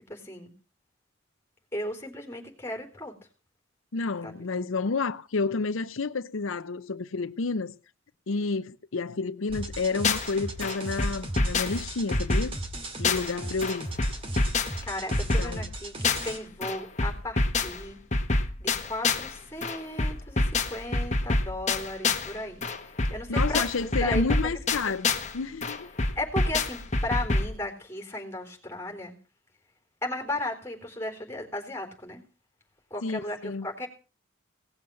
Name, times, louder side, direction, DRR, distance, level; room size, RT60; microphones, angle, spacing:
voice 1, 0.1-0.5 1.7-3.1 4.2-4.5 14.8-18.0 18.6-25.0 26.2-29.1 30.0-32.2 32.9-33.9, left 1 dB, 10° left, 3.9 m, -35 dB
voice 2, 3.9-7.7 8.3-12.6 13.0-13.9 15.4-15.7 23.3-25.1 25.3-25.9 33.0-33.7, left 4 dB, 85° left, 0.7 m, -30 dB
sound 1, 9.5-10.3 10.6-13.4 13.6-16.4 16.6-19.3 19.6-22.3 22.6-25.3 25.6-27.6, left 3 dB, 35° left, 1.4 m, -27 dB
sound 2, 9.5-16.4, right 1 dB, 25° right, 2.1 m, -37 dB
18.0 x 7.0 x 7.6 m
head